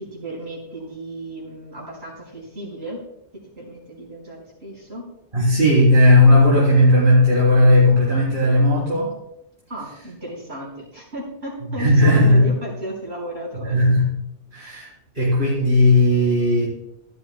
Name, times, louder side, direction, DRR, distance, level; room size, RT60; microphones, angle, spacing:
voice 1, 0.0-3.0 3.6-5.1 9.7-14.0, right 1 dB, 65° right, -4 dB, 5.3 m, -34 dB
voice 2, 5.3-9.1 11.6-12.5 13.5-14.1 14.5-16.7, left 1 dB, 45° right, -7 dB, 4.0 m, -16 dB
17.0 x 12.5 x 2.2 m, 0.80 s
omnidirectional pair, 1.2 m